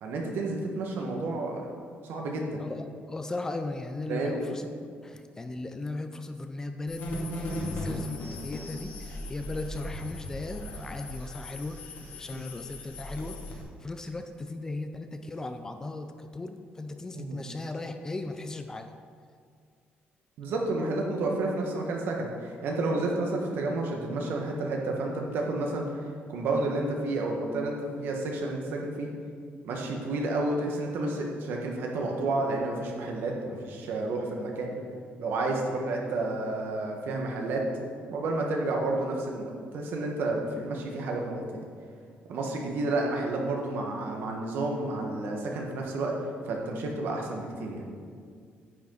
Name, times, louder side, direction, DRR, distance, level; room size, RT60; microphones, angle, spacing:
voice 1, 0.0-1.7 2.0-2.6 4.1-4.5 12.3-12.4 17.1-17.4 20.4-26.0 26.3-29.1 29.6-34.7 35.2-37.6 38.1-41.4 42.3-47.9, right 2 dB, 65° right, 0 dB, 1.5 m, -30 dB
voice 2, 2.6-4.6 4.9-7.1 7.3-11.8 12.2-18.9, left 2 dB, 15° left, 7 dB, 0.4 m, -37 dB
sound 1, 6.9-13.6, left 1 dB, 60° left, 2.1 m, -37 dB
9.8 x 8.2 x 3.9 m, 2.1 s
cardioid pair, 170°, 4 cm